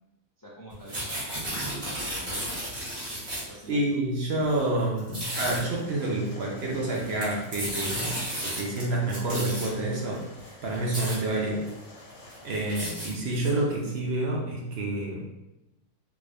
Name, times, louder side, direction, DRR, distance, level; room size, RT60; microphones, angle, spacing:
voice 1, 0.4-2.5 3.5-4.0, right 1 dB, 35° left, -6 dB, 0.3 m, -47 dB
sound 1, 0.7-3.6 4.4-4.6 5.0-5.6 6.8-8.8 9.1-9.7 10.4-10.5 10.7-11.2 11.7-11.8 12.1-13.7, right 1 dB, 35° right, 1.5 m, -33 dB
voice 2, 3.7-10.2 10.6-11.7 12.4-15.2, right 2 dB, 55° right, -2 dB, 0.8 m, -28 dB
sound 2, 5.2-13.0, left 2 dB, 75° left, 1.3 m, -49 dB
3.6 x 2.5 x 3.2 m, 0.92 s
omnidirectional pair, 1.4 m